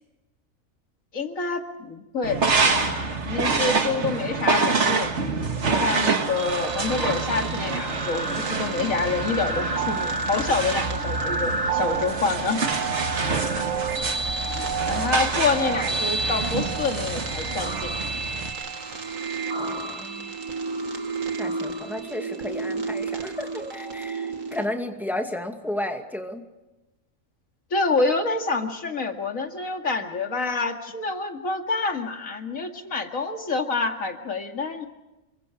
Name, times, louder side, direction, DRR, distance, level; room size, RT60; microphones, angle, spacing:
voice 1, 1.1-12.6 14.9-18.0 27.7-34.9, left 3 dB, 80° left, 4 dB, 2.6 m, -27 dB
sound 1, 2.2-18.5, right 4 dB, 60° right, 2.0 m, -27 dB
sound 2, 6.3-24.6, right 4 dB, 75° right, 2.3 m, -31 dB
voice 2, 19.5-20.3 21.4-26.5, left 1 dB, ahead, 4 dB, 2.2 m, -33 dB
28.5 x 24.0 x 4.9 m, 1.0 s
omnidirectional pair, 1.4 m